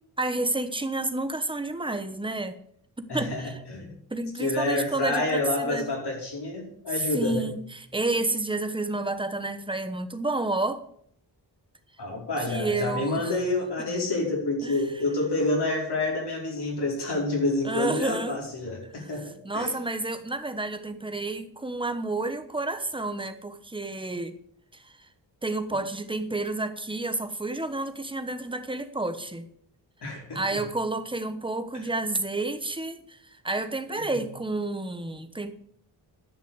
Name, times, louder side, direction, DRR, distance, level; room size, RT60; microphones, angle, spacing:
voice 1, 0.2-2.6 3.0-3.6 4.1-5.9 7.1-10.8 12.5-13.3 14.6-14.8 17.6-18.4 19.0-19.1 19.4-24.4 24.7-25.0 25.4-29.4 30.3-35.5, right 2 dB, 10° right, 9 dB, 1.0 m, -30 dB
voice 2, 3.1-3.9 4.4-7.5 12.0-19.8 30.0-30.7 33.9-34.2, left 2 dB, 70° left, -1 dB, 4.9 m, -28 dB
11.0 x 6.4 x 7.9 m, 0.66 s
wide cardioid pair, 120°, 41 cm